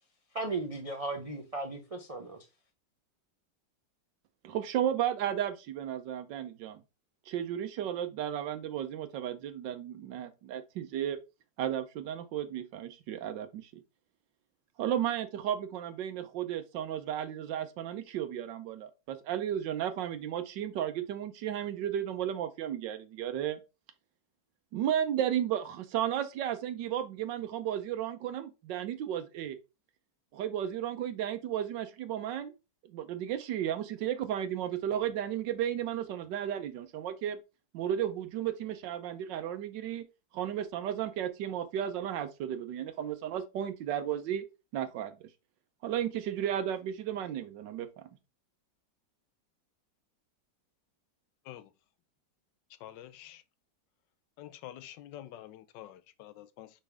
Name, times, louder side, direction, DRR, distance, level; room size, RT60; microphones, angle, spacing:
voice 1, 0.3-2.4, right 3 dB, 40° right, 0.5 m, -36 dB
voice 2, 4.4-6.8 7.3-11.2 11.6-13.8 14.8-23.6 24.7-29.6 30.3-32.5 32.9-37.4 37.7-40.0 40.3-44.4 44.7-45.3 45.8-47.9, right 10 dB, 85° right, 1.4 m, -34 dB
voice 3, 52.8-53.4 54.4-56.7, left 12 dB, 85° left, 1.3 m, -47 dB
5.4 x 5.3 x 3.4 m
omnidirectional pair, 1.9 m